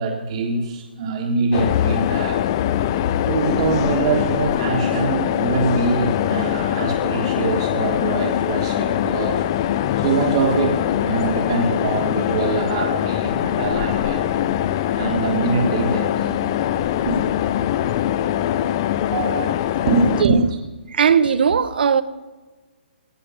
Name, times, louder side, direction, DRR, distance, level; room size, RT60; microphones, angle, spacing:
voice 1, 0.0-2.4 3.2-9.4 10.0-14.4 14.9-16.3 17.0-17.2 19.7-20.6, right 4 dB, 35° right, 1.3 m, -23 dB
sound 1, 1.5-20.2, left 11 dB, 25° left, 0.4 m, -22 dB
voice 2, 19.1-19.6 20.0-20.4 20.9-22.0, right 7 dB, 60° right, 0.8 m, -19 dB
17.5 x 6.4 x 5.5 m
hypercardioid pair, 165°, 6 cm